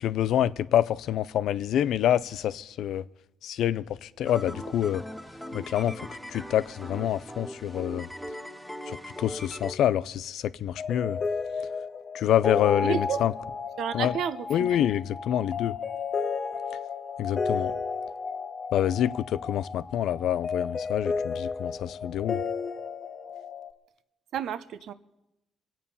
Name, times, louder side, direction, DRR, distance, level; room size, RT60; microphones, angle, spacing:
voice 1, 0.0-3.0 3.4-5.0 5.5-6.0 6.3-8.1 8.9-11.2 12.1-13.3 13.9-14.1 14.5-15.8 17.2-17.7 18.7-22.4, left 11 dB, 80° left, 0.4 m, -27 dB
sound 1, 4.3-9.7, equal, ahead, 1.2 m, -40 dB
sound 2, 10.8-23.7, left 5 dB, 50° left, 1.2 m, -33 dB
voice 2, 12.8-13.2 13.8-14.9 24.3-24.9, right 8 dB, 75° right, 0.7 m, -31 dB
23.5 x 8.6 x 5.5 m
cardioid pair, 90°, 0 cm